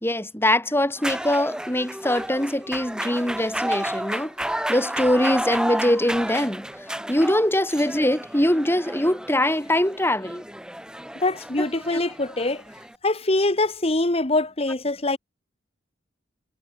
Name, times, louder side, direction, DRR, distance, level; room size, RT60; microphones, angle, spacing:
voice 1, 0.0-4.3 4.7-6.7 7.1-10.4, left 1 dB, 15° left, 4.7 m, -22 dB
sound 1, 1.0-13.0, right 1 dB, 5° right, 3.8 m, -32 dB
voice 2, 11.1-12.6 13.0-15.2, left 2 dB, 35° left, 1.4 m, -23 dB
head